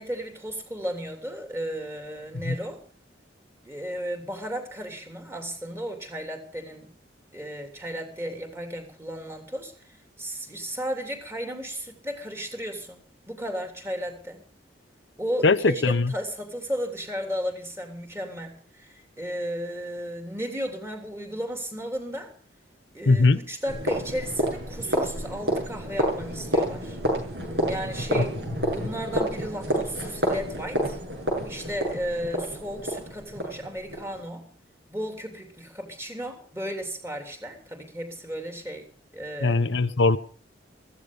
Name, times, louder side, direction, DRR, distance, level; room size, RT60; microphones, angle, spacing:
voice 1, 0.0-2.8 3.6-6.9 7.3-14.4 15.2-22.3 22.9-27.0 27.7-28.4 28.7-31.0 31.4-34.5 34.9-38.9 39.1-39.6, equal, 15° right, 4 dB, 3.1 m, -34 dB
voice 2, 15.4-16.1 23.1-23.4 28.2-28.3 39.4-40.2, left 3 dB, 75° left, 11 dB, 0.8 m, -20 dB
sound 1, 23.7-34.2, equal, 65° right, 7.9 m, -29 dB
15.0 x 15.0 x 5.2 m, 0.44 s
head